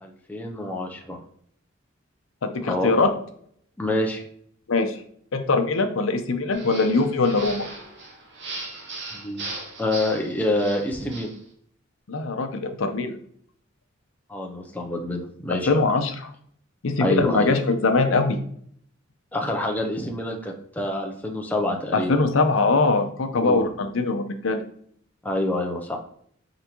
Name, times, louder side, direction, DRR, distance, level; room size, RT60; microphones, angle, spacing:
voice 1, 0.0-1.2 2.7-2.9 3.8-4.2 9.1-9.4 9.8-11.3 14.3-15.8 17.0-17.5 19.3-22.1 23.3-23.6 25.2-26.0, left 1 dB, 10° left, 1 dB, 0.5 m, -27 dB
voice 2, 2.4-3.1 4.7-5.0 5.3-7.6 12.1-13.1 15.5-16.3 16.8-18.4 21.9-24.6, left 3 dB, 75° left, 6 dB, 0.6 m, -22 dB
sound 1, 6.5-11.4, right 2 dB, 60° right, 1.0 m, -38 dB
4.4 x 3.9 x 2.9 m, 0.63 s
head